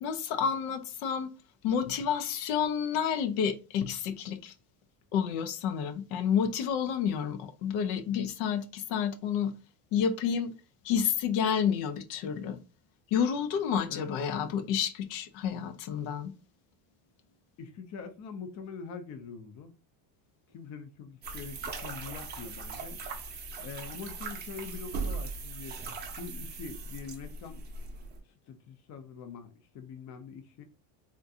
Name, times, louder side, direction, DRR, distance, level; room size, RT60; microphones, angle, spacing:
voice 1, 0.0-1.3 1.6-4.5 5.1-9.5 9.9-10.5 10.8-12.6 13.1-16.3, left 7 dB, 90° left, 0.6 m, -30 dB
voice 2, 13.9-14.6 17.6-19.7 20.5-23.0 23.6-25.8 26.2-27.6 28.4-30.6, left 5 dB, 40° left, 0.5 m, -44 dB
sound 1, 21.2-28.2, right 4 dB, 25° right, 0.6 m, -39 dB
3.6 x 2.4 x 2.7 m
cardioid pair, 155°, 44 cm